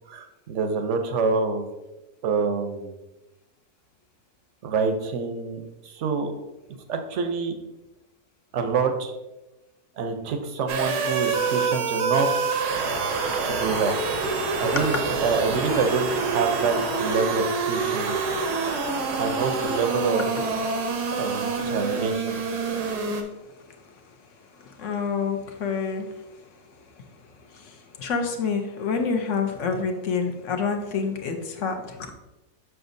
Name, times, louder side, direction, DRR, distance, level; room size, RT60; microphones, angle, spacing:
voice 1, 0.1-1.7 2.2-2.9 4.6-6.3 6.9-7.5 8.5-9.1 10.0-12.4 13.4-14.1 14.6-18.2 19.2-20.3 21.2-22.4, right 4 dB, 60° right, 6 dB, 0.9 m, -26 dB
sound 1, 10.7-23.2, right 4 dB, 90° right, 1.4 m, -26 dB
voice 2, 24.6-26.1 27.5-32.1, left 5 dB, 60° left, 5 dB, 1.0 m, -28 dB
6.9 x 6.1 x 2.6 m, 1.0 s
omnidirectional pair, 1.7 m